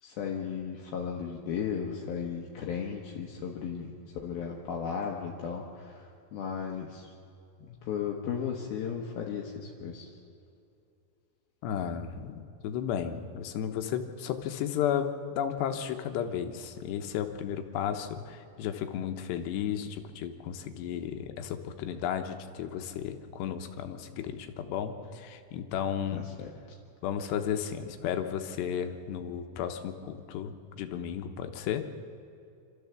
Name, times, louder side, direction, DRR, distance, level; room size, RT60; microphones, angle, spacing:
voice 1, 0.0-7.1 7.6-10.1 26.1-26.8, left 7 dB, 70° left, 0 dB, 2.9 m, -35 dB
voice 2, 11.6-26.3 27.0-31.8, left 9 dB, 85° left, 6 dB, 3.2 m, -33 dB
27.0 x 13.5 x 7.2 m, 2.6 s
omnidirectional pair, 4.9 m